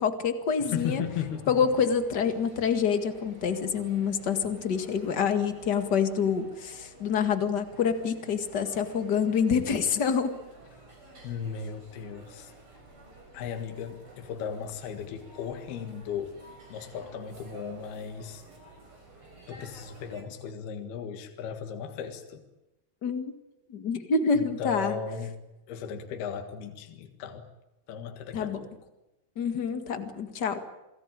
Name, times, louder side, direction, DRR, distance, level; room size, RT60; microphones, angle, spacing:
voice 1, 0.0-1.0 1.5-10.3 23.0-23.3 23.7-25.0 28.3-28.7 29.3-30.6, left 6 dB, 40° left, 8 dB, 1.5 m, -27 dB
voice 2, 0.6-1.5 11.2-12.5 13.3-16.3 16.7-18.4 19.5-22.4 24.6-25.3 25.7-27.5 27.9-28.7, left 7 dB, 70° left, 5 dB, 3.5 m, -36 dB
sound 1, 0.7-20.2, right 2 dB, 30° right, 6.3 m, -52 dB
28.5 x 19.0 x 9.0 m, 0.95 s
omnidirectional pair, 4.7 m